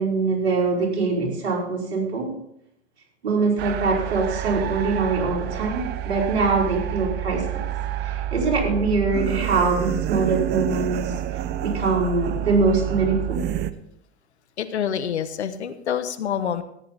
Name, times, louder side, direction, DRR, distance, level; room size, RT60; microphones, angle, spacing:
voice 1, 0.0-2.3 3.2-7.7 8.0-13.4, right 4 dB, 70° right, -2 dB, 4.9 m, -23 dB
sound 1, 3.6-13.7, right 11 dB, 30° right, 0.7 m, -28 dB
voice 2, 14.6-16.6, left 8 dB, 75° left, 12 dB, 1.2 m, -27 dB
14.5 x 10.0 x 4.2 m, 0.75 s
hypercardioid pair, 105°, 33 cm